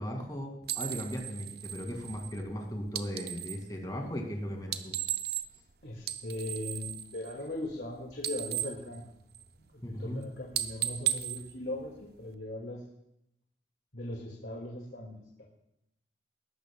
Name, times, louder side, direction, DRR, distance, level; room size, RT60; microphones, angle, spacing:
voice 1, 0.0-4.9 9.8-10.2, equal, 20° left, 1 dB, 2.2 m, -37 dB
sound 1, 0.6-3.7 4.6-5.7 6.0-7.9 8.1-9.7 10.0-10.2 10.5-12.3, right 12 dB, 60° right, 0.7 m, -36 dB
voice 2, 5.8-9.0 9.7-12.8 13.9-15.4, left 1 dB, 75° left, -2 dB, 2.1 m, -39 dB
20.5 x 12.0 x 2.3 m, 0.82 s
head